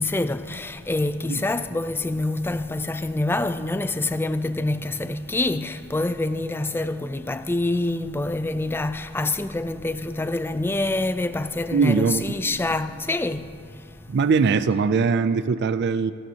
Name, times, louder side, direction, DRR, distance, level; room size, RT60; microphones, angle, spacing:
voice 1, 0.0-13.5, left 2 dB, 10° left, 0.4 m, -26 dB
voice 2, 11.7-12.4 14.1-16.1, right 5 dB, 55° right, 0.4 m, -21 dB
26.5 x 12.5 x 2.9 m
head